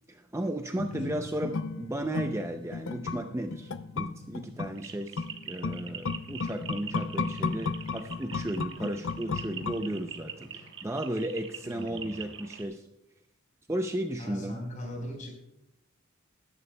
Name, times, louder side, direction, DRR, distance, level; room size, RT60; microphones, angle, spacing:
voice 1, 0.1-12.9 13.7-14.6, right 1 dB, 15° right, 5 dB, 0.5 m, -34 dB
sound 1, 0.8-10.3 10.6-10.7, left 4 dB, 70° left, 0.5 m, -35 dB
voice 2, 0.9-1.3 11.6-12.3 14.2-15.4, equal, 40° left, 1 dB, 4.2 m, -40 dB
sound 2, 4.7-12.6, right 8 dB, 60° right, 1.2 m, -44 dB
20.5 x 11.0 x 2.2 m, 0.83 s
head